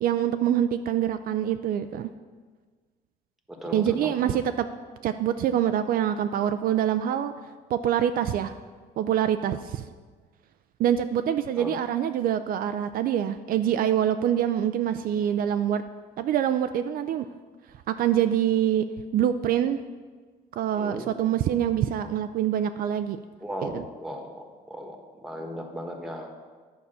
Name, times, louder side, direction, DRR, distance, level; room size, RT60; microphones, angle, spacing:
voice 1, 0.0-2.1 3.7-4.7 5.0-7.3 7.7-8.6 9.0-9.8 10.8-15.8 16.2-17.3 17.9-18.9 19.1-19.8 20.6-23.2 23.6-23.8, right 10 dB, 60° right, 9 dB, 0.4 m, -25 dB
voice 2, 3.5-4.4 11.5-11.8 20.8-21.1 23.4-26.3, equal, ahead, 2 dB, 1.4 m, -37 dB
9.5 x 4.8 x 6.8 m, 1.5 s
cardioid pair, 110°, 17 cm